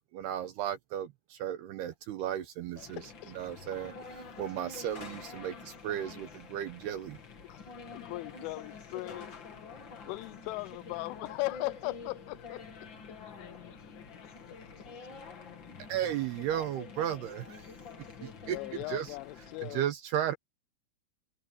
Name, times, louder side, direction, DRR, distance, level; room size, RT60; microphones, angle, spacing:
voice 1, 0.1-7.2 15.9-17.7 18.2-18.6 18.9-19.2 19.6-20.3, right 11 dB, 75° right, 2.5 m, -35 dB
voice 2, 2.8-3.3 7.4-7.6 7.9-9.3 10.1-12.9 14.2-14.3 14.6-14.9 18.4-19.8, left 21 dB, 85° left, 3.2 m, -39 dB
sound 1, 2.8-19.8, left 5 dB, 55° left, 1.3 m, -47 dB
voice 3, 13.2-15.0 15.3-15.9, left 13 dB, 70° left, 3.6 m, -56 dB
omnidirectional pair, 5.5 m